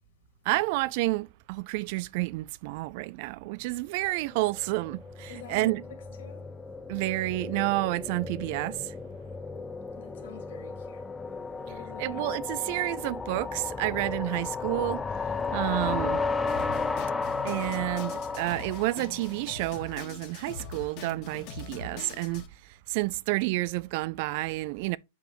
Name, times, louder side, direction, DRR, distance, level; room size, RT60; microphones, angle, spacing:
voice 1, 0.5-5.8 6.9-8.9 12.0-15.0 15.5-16.2 17.4-25.0, right 21 dB, 50° right, 0.3 m, -30 dB
sound 1, 4.2-19.5, left 4 dB, 10° left, 0.5 m, -34 dB
voice 2, 5.3-6.5 10.0-11.0 11.7-12.3, left 7 dB, 75° left, 2.1 m, -48 dB
Drum kit, 16.5-22.5, left 5 dB, 45° left, 1.5 m, -43 dB
6.9 x 5.2 x 3.0 m
hypercardioid pair, 135°, 0 cm